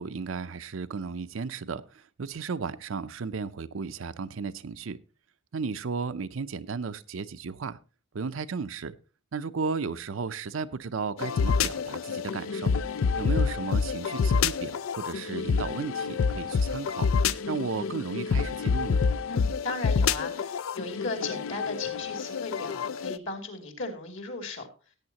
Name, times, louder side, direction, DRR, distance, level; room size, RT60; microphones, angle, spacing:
voice 1, 0.0-5.0 5.5-7.8 8.1-8.9 9.3-12.8 13.2-17.1 17.5-19.0, right 5 dB, 70° right, 12 dB, 0.6 m, -34 dB
sound 1, 11.2-23.2, left 5 dB, 80° left, 0.4 m, -28 dB
voice 2, 19.3-24.7, left 3 dB, 65° left, 5 dB, 2.7 m, -36 dB
17.0 x 8.9 x 2.9 m, 0.33 s
head